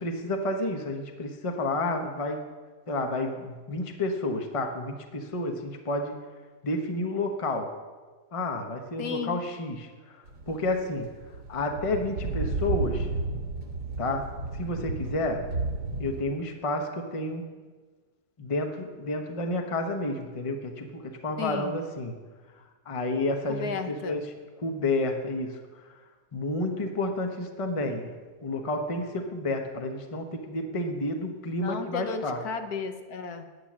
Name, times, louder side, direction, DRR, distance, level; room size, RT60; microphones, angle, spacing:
voice 1, 0.0-2.4 2.9-6.2 6.6-7.7 8.3-10.2 10.5-11.1 11.5-13.1 14.0-14.3 14.5-15.4 16.0-17.5 18.4-22.1 22.9-24.2 24.6-25.6 26.3-28.1 28.4-32.4, left 2 dB, 25° left, 4 dB, 0.9 m, -30 dB
voice 2, 9.0-9.4 21.4-21.8 23.5-24.2 31.6-33.5, left 5 dB, 70° left, 7 dB, 1.3 m, -34 dB
sound 1, 10.3-16.2, right 3 dB, 80° right, 2.2 m, -33 dB
9.9 x 9.6 x 7.3 m, 1.4 s
omnidirectional pair, 1.7 m